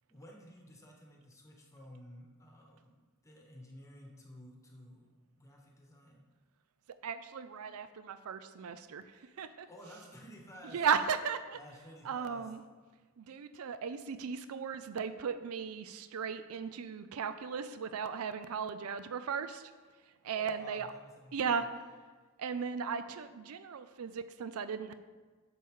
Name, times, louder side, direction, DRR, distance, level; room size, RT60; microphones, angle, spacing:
voice 1, 0.1-5.1 5.3-6.2 9.7-10.8 11.5-12.5 20.3-21.7, equal, 15° left, -1 dB, 1.3 m, -53 dB
voice 2, 7.0-9.7 10.7-11.6 12.0-12.6 13.2-19.7 20.2-20.9 21.3-21.8 22.4-24.9, right 6 dB, 80° right, 12 dB, 0.5 m, -36 dB
10.5 x 6.9 x 3.7 m, 1.4 s
head